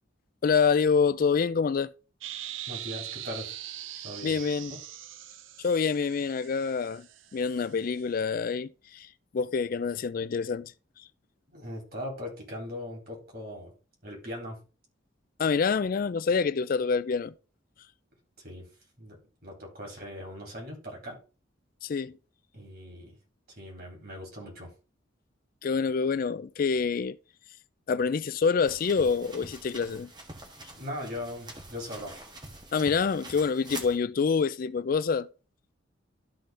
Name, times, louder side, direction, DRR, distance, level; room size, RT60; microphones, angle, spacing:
voice 1, 0.4-1.9 4.2-4.7 5.6-7.1 7.3-9.1 9.3-10.7 11.0-11.1 15.4-17.3 21.8-22.1 25.6-27.2 27.9-30.1 32.7-35.3, left 5 dB, 45° left, 0.4 m, -26 dB
sound 1, 2.2-8.0, right 12 dB, 90° right, 0.6 m, -42 dB
voice 2, 2.7-3.5 4.0-4.4 4.7-4.8 11.5-13.7 14.0-14.6 18.4-18.7 19.0-21.2 22.5-23.2 23.6-24.7 30.5-32.1, left 1 dB, 55° right, 4.0 m, -40 dB
sound 2, 28.6-34.0, right 2 dB, 25° right, 1.4 m, -45 dB
12.5 x 4.2 x 3.8 m
head